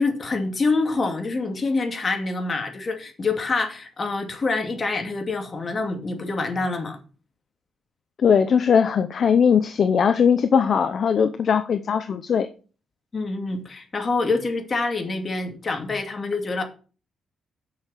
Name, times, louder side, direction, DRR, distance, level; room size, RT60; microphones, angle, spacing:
voice 1, 0.0-7.0 13.1-16.6, left 3 dB, 30° left, 2.4 m, -26 dB
voice 2, 8.2-12.5, left 7 dB, 50° left, 0.7 m, -19 dB
9.2 x 6.7 x 6.5 m
cardioid pair, 140°, 0 cm